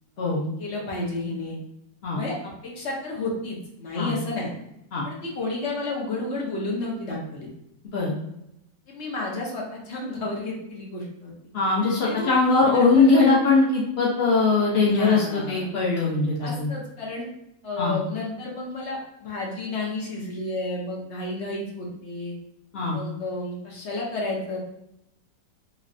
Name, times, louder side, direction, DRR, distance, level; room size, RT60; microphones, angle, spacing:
voice 1, 0.2-1.5 2.1-4.5 5.0-7.5 8.9-11.3 12.0-12.3 12.7-13.4 14.9-15.7 16.4-17.2 17.6-22.3 22.9-24.6, left 2 dB, 55° left, -2 dB, 0.8 m, -32 dB
voice 2, 11.5-16.7 17.8-18.0 22.7-23.0, left 3 dB, 80° left, -5 dB, 0.5 m, -21 dB
3.3 x 3.1 x 2.5 m, 0.82 s
omnidirectional pair, 1.9 m